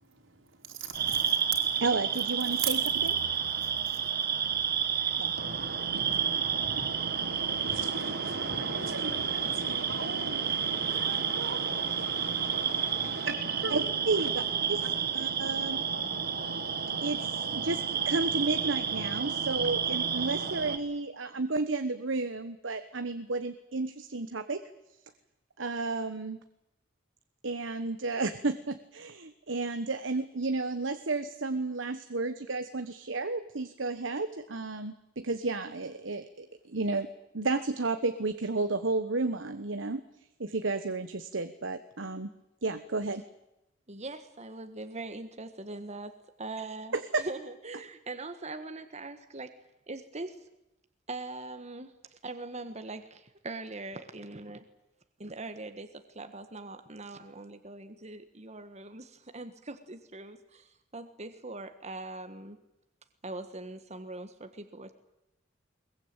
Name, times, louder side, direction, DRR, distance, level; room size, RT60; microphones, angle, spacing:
voice 1, 0.6-1.7 2.6-2.7 3.8-4.0 5.5-13.9 14.2-14.3, right 4 dB, 90° right, 4.5 m, -39 dB
sound 1, 0.9-20.8, right 7 dB, 55° right, 1.8 m, -30 dB
voice 2, 1.8-3.1 5.2-5.3 13.7-14.3 14.7-14.8 15.1-15.8 17.0-17.2 17.5-24.6 25.6-26.4 27.4-37.1 37.3-40.0 40.4-42.3 42.6-43.2 46.9-47.3, right 3 dB, 70° right, 1.3 m, -32 dB
voice 3, 43.9-46.1 46.4-49.5 49.9-50.4 51.1-54.6 55.2-62.6 63.2-64.9, right 2 dB, 35° right, 1.5 m, -42 dB
22.0 x 21.0 x 9.0 m
head